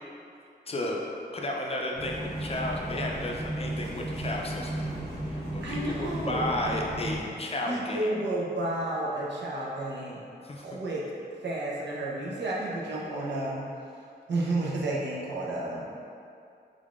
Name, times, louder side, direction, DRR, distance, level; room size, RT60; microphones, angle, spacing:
voice 1, 0.7-1.0 1.3-4.9 5.5-8.1 10.4-10.6, left 1 dB, 35° left, -1 dB, 0.4 m, -33 dB
sound 1, 2.0-7.2, right 1 dB, 70° right, 1.5 m, -34 dB
voice 2, 5.6-6.5 7.7-10.2 10.6-11.1 11.4-13.6 14.3-15.9, right 2 dB, 90° right, -5 dB, 0.6 m, -31 dB
3.6 x 3.4 x 2.4 m, 2.5 s
wide cardioid pair, 100°, 18 cm